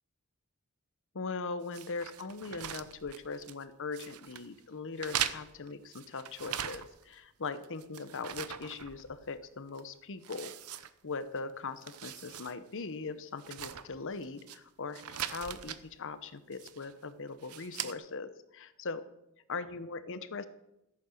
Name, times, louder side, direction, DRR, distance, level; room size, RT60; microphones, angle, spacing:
voice 1, 1.1-10.5 11.0-19.0 19.5-20.5, left 4 dB, 60° left, 13 dB, 0.9 m, -40 dB
sound 1, 1.7-3.6 3.9-4.5 5.0-7.1 7.5-9.4 9.7-9.8 10.2-11.4 11.7-12.5 12.9-13.0 13.4-14.6 14.9-15.8 16.5-17.0 17.4-17.9, right 10 dB, 80° right, 0.8 m, -40 dB
15.0 x 8.5 x 6.6 m, 0.88 s
head